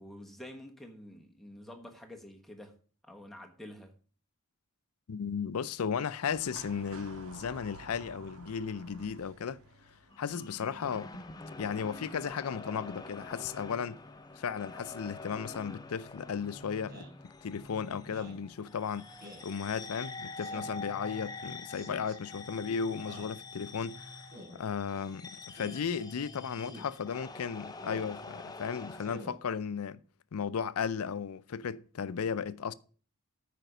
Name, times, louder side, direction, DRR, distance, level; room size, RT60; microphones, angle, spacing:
voice 1, 0.0-2.7 3.0-3.9, left 1 dB, ahead, 1.2 m, -48 dB
voice 2, 5.1-9.6 10.2-11.3 11.6-14.0 14.4-19.1 19.4-30.0 30.3-32.7, left 6 dB, 80° left, 0.5 m, -35 dB
sound 1, 6.3-20.4 20.6-20.7 21.8-22.1 22.4-22.5, right 2 dB, 70° right, 1.6 m, -55 dB
sound 2, 10.1-29.2, left 3 dB, 20° left, 0.6 m, -46 dB
Speech synthesizer, 16.9-17.2 18.0-18.4 19.2-19.5 20.4-20.8 21.7-22.2 23.0-23.4 24.3-24.6 25.5-25.8 26.6-26.9 27.8-28.1 29.0-29.4, equal, 45° right, 3.4 m, -49 dB
9.1 x 5.1 x 6.6 m
head